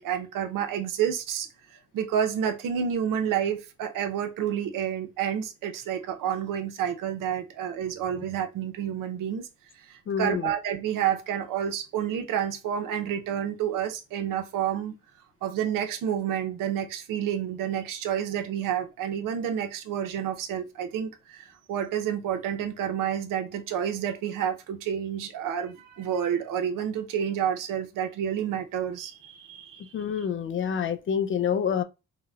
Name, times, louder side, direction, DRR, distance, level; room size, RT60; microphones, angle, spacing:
voice 1, 0.0-9.5 9.8-14.9 15.4-30.3, right 9 dB, 80° right, 0.6 m, -29 dB
voice 2, 10.1-10.4 29.9-31.8, left 7 dB, 40° left, 0.4 m, -27 dB
3.9 x 2.0 x 2.2 m
cardioid pair, 100°, 32 cm